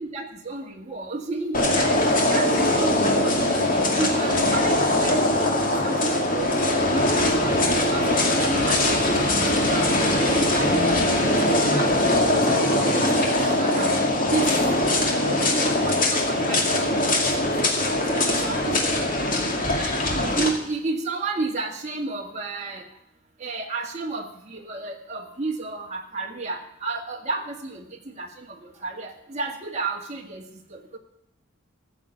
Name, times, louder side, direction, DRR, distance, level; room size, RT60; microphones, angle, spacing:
voice 1, 0.0-2.0 2.3-3.7 4.0-5.6 5.8-7.3 7.6-8.9 9.5-9.9 10.2-13.9 14.3-14.5 15.5-17.2 17.6-17.8 18.1-18.9 20.4-22.8 23.4-30.4 30.7-30.8, right 3 dB, 35° right, 0 dB, 1.9 m, -32 dB
sound 1, 1.5-20.5, left 1 dB, 40° left, 2.3 m, -21 dB
14.5 x 7.2 x 8.5 m, 0.74 s
head